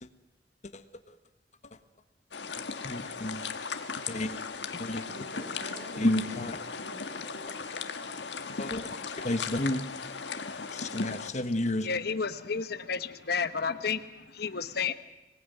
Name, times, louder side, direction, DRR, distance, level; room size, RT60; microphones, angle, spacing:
sound 1, 2.3-11.3, left 5 dB, 90° left, 1.6 m, -37 dB
voice 1, 2.8-3.4 4.1-4.4 4.7-5.1 6.0-6.6 8.6-8.9 9.2-9.8 10.7-11.9, left 1 dB, 45° left, 1.3 m, -31 dB
voice 2, 5.1-6.5 6.7-7.7, right 1 dB, 80° right, 7.8 m, -46 dB
voice 3, 11.8-14.9, left 5 dB, 65° left, 1.1 m, -31 dB
25.5 x 19.0 x 9.3 m
head